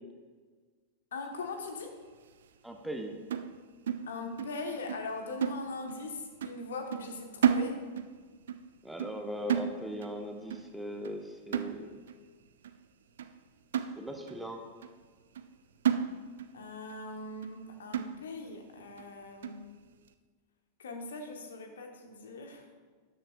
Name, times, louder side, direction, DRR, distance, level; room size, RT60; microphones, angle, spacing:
voice 1, 1.1-2.0 4.1-7.9 16.5-19.8 20.8-22.6, left 3 dB, 65° left, 4 dB, 1.2 m, -41 dB
voice 2, 2.6-3.1 8.8-11.9 14.0-14.7, equal, 5° right, 3 dB, 1.0 m, -39 dB
sound 1, 3.3-4.6 4.9-5.1 5.4-6.1 6.4-6.6 6.9-8.2 8.5-8.7 9.0-10.2 10.5-10.7 11.0-11.2 11.5-12.2 12.6-12.8 13.2-13.3 13.7-14.4 14.8-14.9 15.4-15.5 15.8-16.6 16.9-17.0 17.4-17.6 17.9-18.5 19.0-19.1 19.4-19.7, right 8 dB, 60° right, 0.5 m, -32 dB
13.0 x 10.0 x 2.3 m, 1.5 s
figure-of-eight pair, 90°, 0 cm